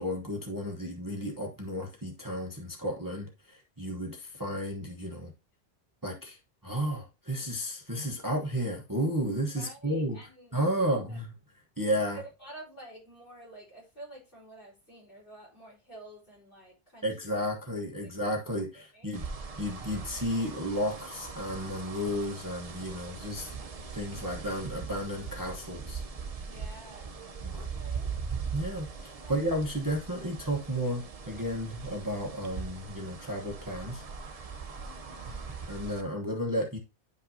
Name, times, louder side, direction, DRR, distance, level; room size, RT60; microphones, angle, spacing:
voice 1, 0.0-5.3 6.0-6.4 6.6-10.2 10.5-11.3 11.8-12.2 17.0-19.2 19.6-23.5 23.9-26.0 27.4-27.7 28.5-34.0 35.7-36.8, equal, 20° right, 1.1 m, -33 dB
voice 2, 9.6-11.2 12.1-17.3 18.0-18.1 18.4-19.1 23.5-23.6 26.5-27.2 27.5-28.1 29.2-29.4 34.8-35.6, right 2 dB, 50° left, 4.6 m, -50 dB
sound 1, 19.1-36.0, right 5 dB, 35° right, 0.8 m, -40 dB
10.0 x 5.4 x 2.7 m
omnidirectional pair, 1.1 m